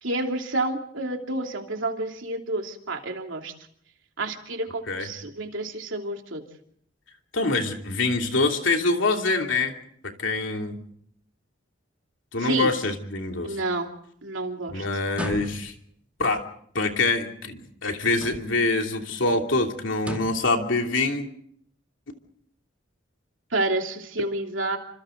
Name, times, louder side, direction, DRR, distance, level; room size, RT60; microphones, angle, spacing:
voice 1, 0.0-3.5 4.2-6.4 12.4-12.7 13.4-13.9 14.2-14.9 23.5-24.8, right 2 dB, 75° right, 3 dB, 3.0 m, -29 dB
voice 2, 7.3-9.7 10.2-10.8 12.3-13.6 14.7-15.7 16.2-16.4 16.7-21.3, left 3 dB, 75° left, 3 dB, 3.0 m, -25 dB
sound 1, 15.1-15.9 18.1-18.7 20.0-20.5, equal, 5° right, 2.1 m, -36 dB
29.0 x 26.5 x 3.9 m, 0.66 s
head